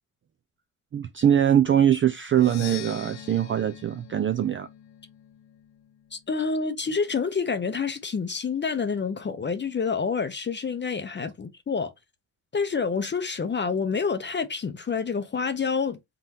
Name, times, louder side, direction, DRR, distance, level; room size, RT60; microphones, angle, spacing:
voice 1, 0.9-4.7, right 10 dB, 35° right, 0.4 m, -22 dB
Percussion, 2.3-6.1, left 11 dB, 85° left, 0.8 m, -43 dB
voice 2, 6.1-11.9 12.5-16.0, left 5 dB, 30° left, 0.6 m, -28 dB
3.8 x 3.7 x 2.8 m
supercardioid pair, 65°, 38 cm